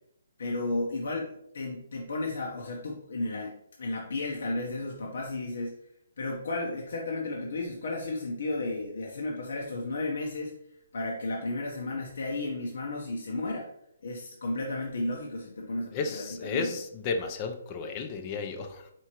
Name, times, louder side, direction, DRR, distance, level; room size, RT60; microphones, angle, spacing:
voice 1, 0.4-5.7 6.2-10.5 10.9-13.7 14.0-16.7, left 2 dB, 70° left, -1 dB, 0.8 m, -33 dB
voice 2, 15.9-18.9, left 4 dB, 30° left, 5 dB, 0.5 m, -33 dB
4.5 x 3.6 x 2.9 m, 0.75 s
hypercardioid pair, 155°, 0 cm